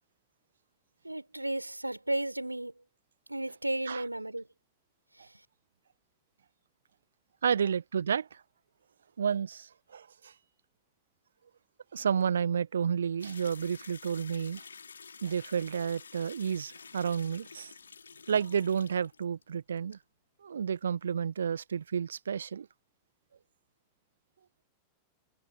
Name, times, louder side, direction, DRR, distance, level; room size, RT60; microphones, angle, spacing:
voice 1, 1.0-2.7 3.3-4.5, right 1 dB, 85° right, 4.5 m, -33 dB
voice 2, 7.4-8.4 9.2-10.3 11.9-14.6 15.2-17.7 18.3-20.0 20.4-22.7, right 7 dB, 70° right, 1.0 m, -31 dB
sound 1, 13.2-19.5 19.8-20.0, left 5 dB, 75° left, 3.8 m, -50 dB
figure-of-eight pair, 90°, 0 cm